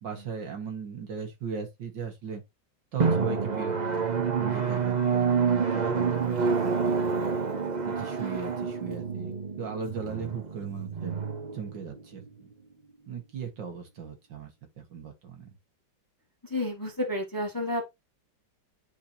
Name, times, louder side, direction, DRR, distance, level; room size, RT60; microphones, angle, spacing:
voice 1, 0.0-2.4 2.9-7.4 7.9-11.2 11.5-12.5 13.1-14.5 14.8-15.5, right 6 dB, 70° right, 2.3 m, -38 dB
Drum, 3.0-12.3, right 5 dB, 50° right, 0.5 m, -28 dB
voice 2, 16.4-17.9, left 1 dB, 10° left, 1.2 m, -31 dB
9.4 x 4.6 x 2.8 m
omnidirectional pair, 2.0 m